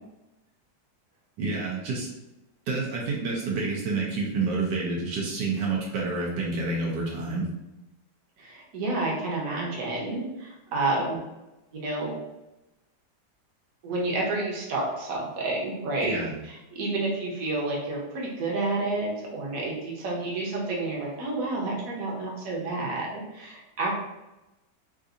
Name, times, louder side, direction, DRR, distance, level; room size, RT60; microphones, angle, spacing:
voice 1, 1.4-2.1 2.7-7.5 16.0-16.3, right 3 dB, 80° right, -3 dB, 1.3 m, -28 dB
voice 2, 8.4-11.2 11.7-12.2 13.8-16.2 16.4-23.9, right 2 dB, 60° right, -3 dB, 1.2 m, -30 dB
3.8 x 2.5 x 2.5 m, 0.98 s
omnidirectional pair, 1.8 m